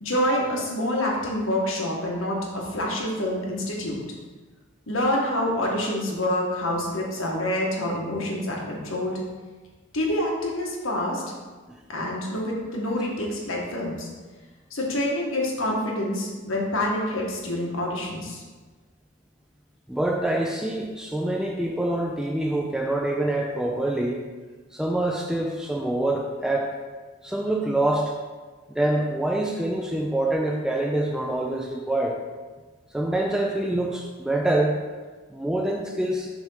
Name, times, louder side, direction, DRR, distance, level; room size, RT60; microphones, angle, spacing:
voice 1, 0.0-4.0 4.9-9.2 9.9-11.2 11.9-14.1 14.7-18.4, left 1 dB, 80° left, -2 dB, 1.4 m, -27 dB
voice 2, 19.9-24.2 24.7-26.8 27.2-28.1 28.7-32.2 32.9-34.8 35.3-36.3, right 1 dB, 5° right, -1 dB, 0.4 m, -25 dB
6.1 x 3.5 x 5.6 m, 1.3 s
head